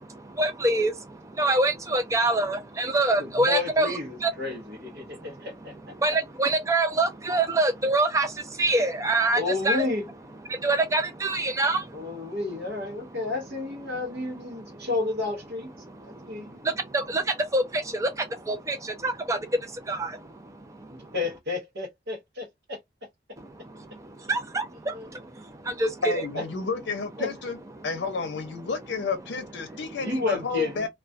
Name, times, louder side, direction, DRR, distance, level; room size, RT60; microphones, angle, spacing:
voice 1, 0.0-4.3 5.0-5.5 5.9-9.8 10.5-12.3 13.1-13.2 13.9-14.9 15.8-21.1 23.4-26.1 29.7-29.8, right 2 dB, 15° right, 0.4 m, -27 dB
voice 2, 3.2-5.7 9.3-10.1 11.9-15.7 16.0-16.6 20.9-22.8 24.9-25.1 27.2-27.3 30.0-30.8, left 3 dB, 75° right, 0.8 m, -31 dB
voice 3, 26.0-30.9, left 4 dB, 90° left, 0.6 m, -31 dB
2.2 x 2.2 x 2.5 m
head